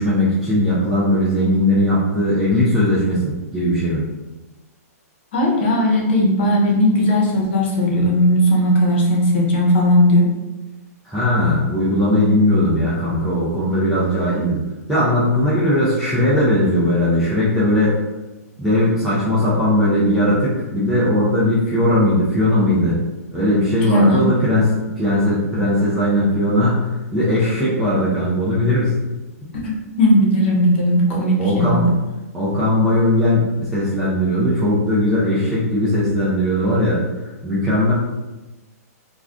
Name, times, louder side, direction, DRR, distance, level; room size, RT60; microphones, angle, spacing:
voice 1, 0.0-4.0 11.0-14.6 14.9-18.0 18.6-23.0 23.3-28.9 31.4-31.9 32.3-37.9, left 1 dB, ahead, -11 dB, 0.3 m, -18 dB
voice 2, 5.3-10.3 23.9-24.3 29.6-31.9, equal, 45° left, -2 dB, 0.8 m, -17 dB
2.4 x 2.3 x 3.4 m, 1.1 s
hypercardioid pair, 175°, 9 cm